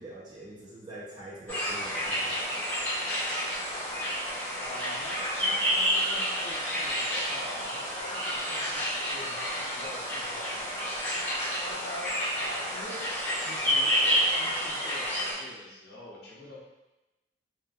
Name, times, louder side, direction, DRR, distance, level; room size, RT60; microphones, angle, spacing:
voice 1, 0.0-2.6, right 1 dB, 25° right, -6 dB, 0.6 m, -44 dB
sound 1, 1.5-15.3, equal, 15° left, 1.3 m, -30 dB
voice 2, 4.6-11.1 11.6-13.0 13.4-16.6, left 1 dB, 70° left, -4 dB, 0.7 m, -45 dB
2.7 x 2.4 x 2.4 m, 1.0 s
head